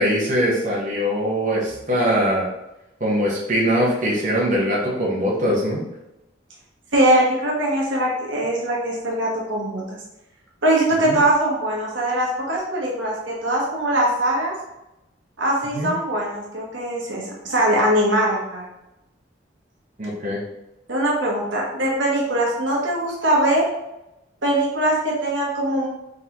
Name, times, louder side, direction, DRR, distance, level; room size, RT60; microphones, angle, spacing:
voice 1, 0.0-2.5 3.0-5.8 11.0-11.2 15.7-15.9 20.0-20.4, equal, 40° right, -5 dB, 1.0 m, -22 dB
voice 2, 6.9-10.0 10.6-14.5 15.4-18.7 20.9-23.7 24.4-25.9, right 1 dB, 75° right, -3 dB, 1.1 m, -21 dB
3.8 x 3.7 x 2.9 m, 0.91 s
head